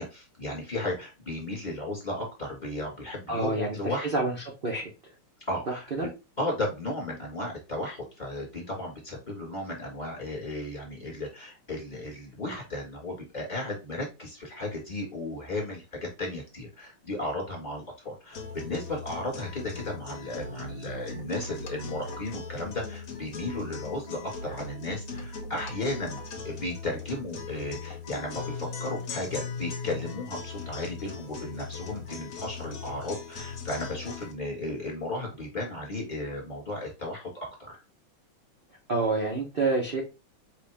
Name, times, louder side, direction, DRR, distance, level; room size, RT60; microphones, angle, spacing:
voice 1, 0.0-4.2 5.5-6.1 6.4-37.8, left 1 dB, 20° left, -2 dB, 1.6 m, -35 dB
voice 2, 3.3-3.8 4.1-4.3 4.6-4.9 5.7-6.1 38.9-40.0, right 3 dB, 55° right, -1 dB, 0.6 m, -27 dB
sound 1, 18.3-34.3, left 4 dB, 55° left, 1.0 m, -39 dB
5.0 x 2.7 x 3.4 m, 0.27 s
omnidirectional pair, 2.4 m